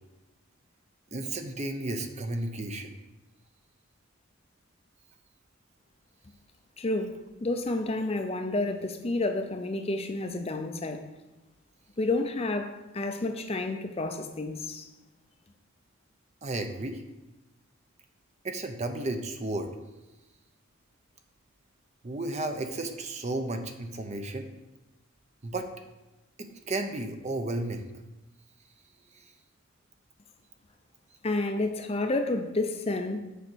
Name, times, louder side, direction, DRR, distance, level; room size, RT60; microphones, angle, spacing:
voice 1, 1.1-3.0 16.4-17.0 18.4-19.7 22.0-24.5 25.4-25.7 26.4-27.9, right 2 dB, 30° right, 6 dB, 0.6 m, -33 dB
voice 2, 6.8-11.0 12.0-14.9 31.2-33.2, left 2 dB, 30° left, 6 dB, 0.5 m, -30 dB
6.8 x 5.0 x 6.1 m, 1.0 s
head